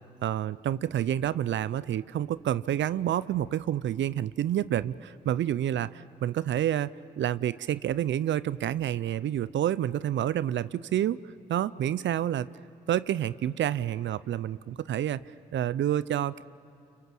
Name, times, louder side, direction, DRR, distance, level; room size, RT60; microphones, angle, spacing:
voice 1, 0.2-11.2 11.5-12.5 12.9-15.2 15.5-16.4, right 11 dB, 70° right, 18 dB, 0.6 m, -28 dB
30.0 x 23.5 x 7.7 m, 2.4 s
supercardioid pair, 45°, 20 cm